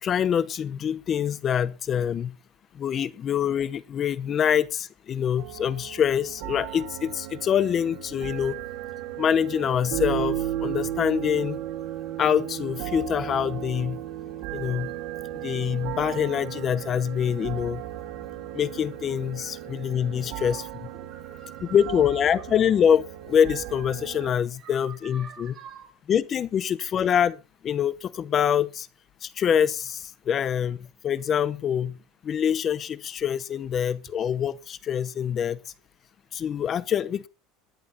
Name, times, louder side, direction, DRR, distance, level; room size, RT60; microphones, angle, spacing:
voice 1, 0.0-2.3 2.7-8.5 9.2-11.6 12.2-14.0 14.5-14.9 15.4-17.8 18.5-20.9 21.7-25.5 26.1-27.4 27.6-28.9 29.2-30.8 31.0-32.0 32.2-35.6 36.3-37.3, left 8 dB, 35° left, 0.8 m, -25 dB
sound 1, 5.4-24.3, right 12 dB, 65° right, 1.7 m, -35 dB
voice 2, 20.0-20.7 20.9-22.4 24.5-25.9, right 7 dB, 35° right, 7.2 m, -47 dB
20.5 x 10.5 x 2.8 m
supercardioid pair, 120°, 0 cm